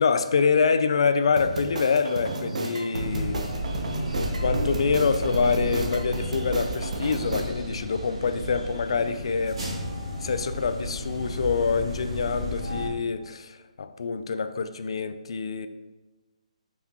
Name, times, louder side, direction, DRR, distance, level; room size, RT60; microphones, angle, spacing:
voice 1, 0.0-3.5 4.4-9.6 10.2-15.7, left 5 dB, 50° left, 10 dB, 0.4 m, -26 dB
sound 1, 1.4-7.4, right 2 dB, 70° right, 1.0 m, -32 dB
sound 2, 2.9-12.9, equal, 45° right, 2.3 m, -32 dB
7.9 x 5.9 x 2.9 m, 1.2 s
hypercardioid pair, 175°, 4 cm